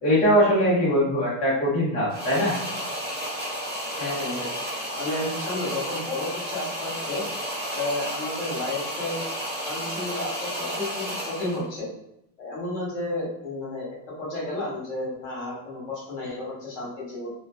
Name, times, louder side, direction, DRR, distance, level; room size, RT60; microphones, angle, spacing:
voice 1, 0.0-2.6, equal, 15° left, -7 dB, 0.7 m, -21 dB
sound 1, 2.1-11.7, equal, 25° right, 0.7 m, -32 dB
voice 2, 4.0-4.5 5.0-7.2 7.7-9.2 9.6-11.9 12.4-13.9 14.2-17.3, left 2 dB, 55° left, -5 dB, 1.2 m, -32 dB
2.4 x 2.3 x 2.2 m, 0.82 s
supercardioid pair, 175°, 42 cm